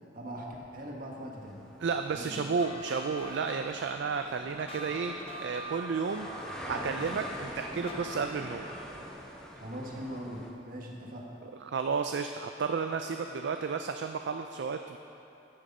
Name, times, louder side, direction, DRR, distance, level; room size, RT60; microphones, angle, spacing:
voice 1, 0.1-0.5 0.7-1.6 2.1-2.4 9.6-11.3, equal, 50° right, -1 dB, 1.5 m, -41 dB
sound 1, 1.4-10.5, equal, 5° left, 1.2 m, -45 dB
voice 2, 1.8-5.1 5.4-6.3 6.7-8.6 11.6-15.0, right 5 dB, 65° right, 6 dB, 0.4 m, -32 dB
sound 2, 2.6-9.0, right 1 dB, 30° left, 0.6 m, -45 dB
14.0 x 6.5 x 5.4 m, 3.0 s
head